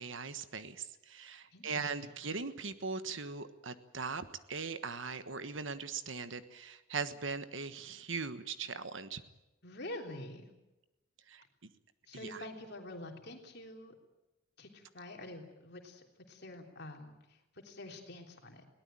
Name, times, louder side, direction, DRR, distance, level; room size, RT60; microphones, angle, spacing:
voice 1, 0.0-9.2 11.3-11.4 12.1-12.4, right 4 dB, 60° right, 11 dB, 1.3 m, -40 dB
voice 2, 1.5-1.9 9.6-10.5 12.1-13.9 14.6-18.7, left 1 dB, 50° left, 3 dB, 3.3 m, -47 dB
22.0 x 18.0 x 8.9 m, 0.97 s
head